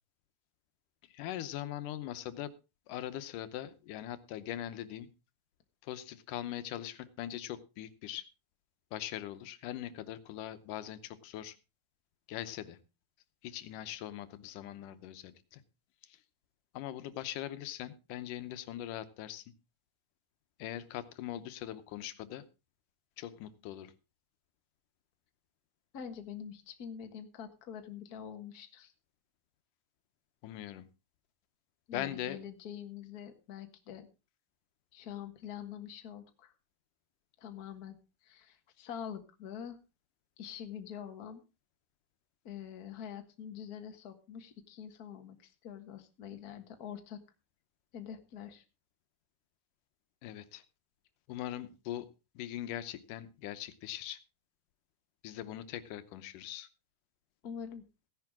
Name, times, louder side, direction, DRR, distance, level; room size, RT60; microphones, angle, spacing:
voice 1, 1.1-2.5 2.9-5.1 5.8-8.3 8.9-11.5 12.3-12.8 13.4-15.6 16.7-19.4 20.6-22.4 23.2-23.9 30.4-30.9 31.9-32.4 50.2-50.6 51.3-52.1 52.4-54.2 55.2-56.7, left 12 dB, 85° left, 12 dB, 2.5 m, -41 dB
voice 2, 25.9-28.9 31.9-34.1 34.9-36.5 37.4-39.8 40.4-41.4 42.4-47.2 47.9-48.6 57.4-57.8, left 8 dB, 40° left, 6 dB, 1.4 m, -45 dB
16.0 x 10.5 x 3.6 m, 0.29 s
omnidirectional pair, 3.6 m